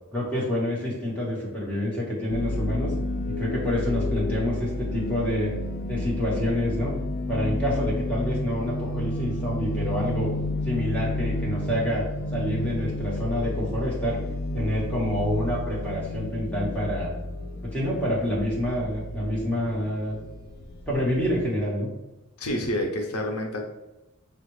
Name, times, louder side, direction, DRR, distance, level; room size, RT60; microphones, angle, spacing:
voice 1, 0.1-2.9 3.4-5.5 5.9-6.9 7.3-10.3 10.6-12.0 12.3-14.2 14.5-17.1 17.6-20.2 20.9-21.9, equal, 5° left, -6 dB, 1.3 m, -27 dB
sound 1, 2.3-21.6, left 1 dB, 45° left, 0.4 m, -31 dB
voice 2, 22.4-23.6, left 1 dB, 90° left, 3 dB, 0.7 m, -28 dB
5.9 x 2.4 x 3.2 m, 0.98 s
head